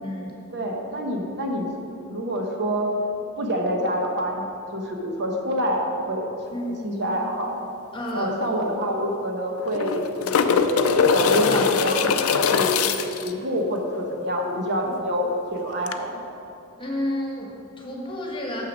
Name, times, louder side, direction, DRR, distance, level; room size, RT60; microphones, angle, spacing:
voice 1, 0.0-0.3 6.5-7.0 7.9-8.3 16.8-18.7, left 1 dB, 25° left, -2 dB, 1.3 m, -31 dB
voice 2, 0.5-1.7 2.1-2.9 3.4-6.4 6.7-7.6 8.1-10.7 11.1-12.9 13.2-16.2, equal, 55° right, 1 dB, 1.0 m, -27 dB
sound 1, 8.1-8.2 8.4-8.5 9.6-13.3 15.9-16.0, left 5 dB, 75° left, 0.4 m, -21 dB
6.6 x 6.3 x 6.2 m, 2.8 s
head